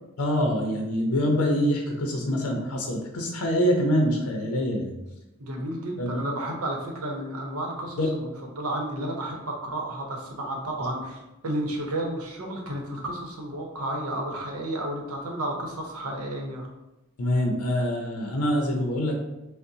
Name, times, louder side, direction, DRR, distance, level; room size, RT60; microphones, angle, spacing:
voice 1, 0.2-4.9 6.0-6.2 8.0-8.1 10.8-10.9 17.2-19.1, equal, 85° left, 1 dB, 0.6 m, -25 dB
voice 2, 5.4-8.3 8.6-16.7, right 1 dB, 85° right, 1 dB, 0.8 m, -32 dB
5.3 x 2.1 x 2.7 m, 0.96 s
head